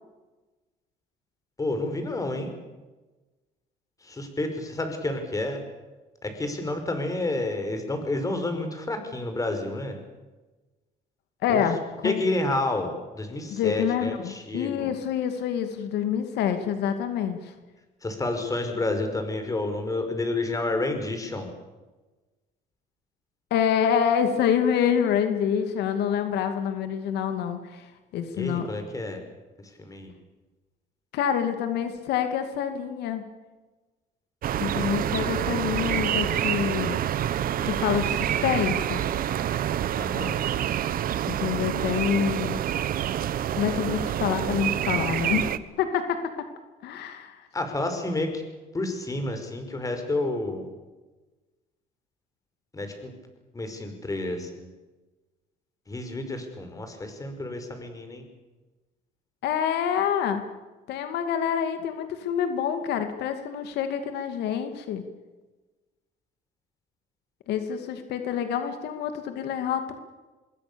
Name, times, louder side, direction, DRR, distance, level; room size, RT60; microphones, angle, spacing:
voice 1, 1.6-2.5 4.0-5.6 6.2-10.0 11.5-11.6 12.0-14.9 18.0-21.5 28.3-29.2 29.8-30.1 39.9-40.4 47.5-48.4 48.7-50.7 52.7-53.1 53.5-54.7 55.9-58.3, left 2 dB, 20° left, 6 dB, 5.3 m, -30 dB
voice 2, 11.4-11.8 12.0-12.2 13.5-17.5 23.5-28.7 31.1-33.2 34.6-37.0 37.6-39.0 41.3-42.6 43.6-45.5 45.8-46.2 46.8-47.5 59.4-60.4 60.9-65.0 67.5-69.9, left 8 dB, 80° left, 7 dB, 2.4 m, -27 dB
sound 1, 34.4-45.6, right 11 dB, 60° right, 1.2 m, -27 dB
25.0 x 21.5 x 7.0 m, 1.2 s
cardioid pair, 110°, 17 cm